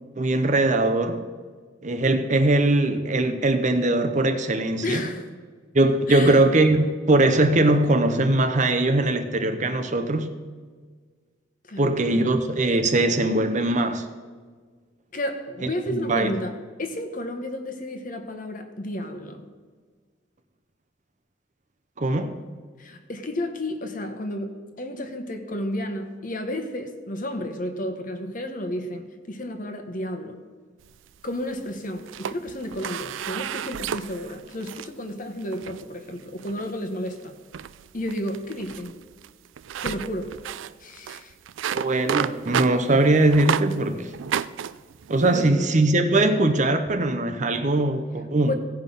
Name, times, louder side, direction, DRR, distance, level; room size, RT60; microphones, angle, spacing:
voice 1, 0.2-1.2 1.8-5.0 5.7-10.3 11.8-14.1 15.9-16.3 22.0-22.4 41.7-44.1 45.1-48.5, right 2 dB, 40° right, 0.7 m, -21 dB
voice 2, 4.8-5.3 6.1-6.4 11.7-12.3 15.1-19.5 22.8-30.4 31.2-37.4 37.9-39.0 39.8-40.4 40.8-41.3 45.2-45.7 48.4-48.5, left 1 dB, 45° left, 1.1 m, -32 dB
sound 1, 30.8-31.6 32.0-34.9 35.4-35.8 36.4-36.8 37.1-37.2 37.5-43.8 44.1-45.4, right 8 dB, 80° right, 0.4 m, -32 dB
16.5 x 5.5 x 5.4 m
head